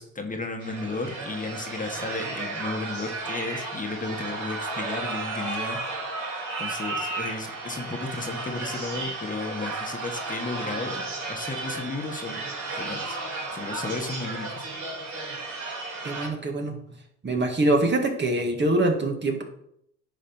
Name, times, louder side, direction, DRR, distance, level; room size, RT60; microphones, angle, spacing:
voice 1, 0.0-5.8 6.6-12.4 12.7-13.2 13.5-14.7, left 3 dB, 25° left, 4 dB, 1.4 m, -34 dB
sound 1, 0.6-16.3, right 3 dB, 85° right, 3.4 m, -33 dB
voice 2, 16.0-16.8 17.2-19.4, right 2 dB, 35° right, 3 dB, 2.0 m, -24 dB
10.0 x 4.9 x 5.4 m, 0.72 s
cardioid pair, 90°, 30 cm